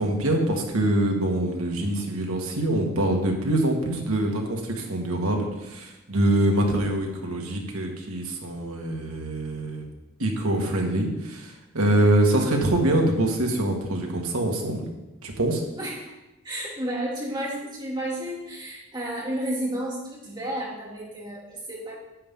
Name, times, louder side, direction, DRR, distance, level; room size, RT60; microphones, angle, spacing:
voice 1, 0.0-9.9 10.2-14.9 15.2-15.6, right 1 dB, 90° right, 1 dB, 1.8 m, -24 dB
voice 2, 15.8-16.1 16.4-22.0, right 1 dB, 20° right, -5 dB, 2.7 m, -32 dB
10.0 x 8.5 x 3.8 m, 0.96 s
head